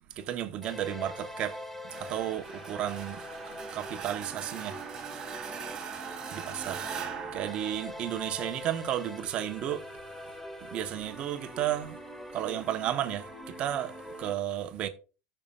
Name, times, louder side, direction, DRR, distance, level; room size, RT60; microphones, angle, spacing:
voice 1, 0.2-1.6 2.0-3.2 3.7-4.8 6.3-6.8 7.3-9.8 10.7-12.0 12.3-13.9 14.2-14.9, right 11 dB, 45° right, 1.0 m, -33 dB
sound 1, 0.6-14.3, equal, 5° left, 1.2 m, -44 dB
sound 2, 1.9-8.6, right 7 dB, 30° right, 1.9 m, -41 dB
14.0 x 5.6 x 2.4 m
supercardioid pair, 115°, 3 cm